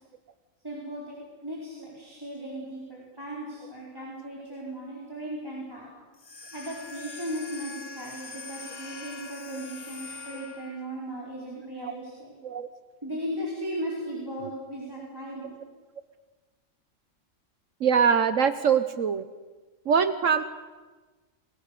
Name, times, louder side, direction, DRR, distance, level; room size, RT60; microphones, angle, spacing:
voice 1, 0.6-1.1 1.4-5.9 6.5-12.3 13.0-15.6, right 1 dB, 15° right, -3 dB, 4.7 m, -37 dB
sound 1, 6.1-10.9, left 4 dB, 50° left, 1.6 m, -42 dB
voice 2, 17.8-19.3 19.9-20.4, right 7 dB, 70° right, 11 dB, 1.3 m, -23 dB
29.5 x 22.5 x 6.8 m, 1.3 s
omnidirectional pair, 1.4 m